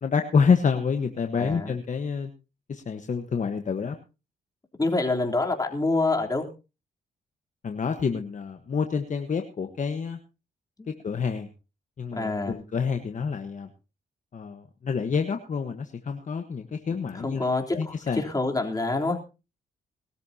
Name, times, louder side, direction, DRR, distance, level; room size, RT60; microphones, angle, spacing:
voice 1, 0.0-2.3 2.7-4.0 7.6-10.2 10.9-11.5 12.0-13.7 14.3-17.4 17.7-18.2, left 5 dB, 45° left, 6 dB, 1.3 m, -27 dB
voice 2, 1.4-1.7 4.8-6.5 10.8-10.9 12.2-12.5 17.2-19.2, left 2 dB, 20° left, 1 dB, 3.5 m, -26 dB
21.5 x 13.0 x 2.9 m, 0.31 s
cardioid pair, 80°, 18 cm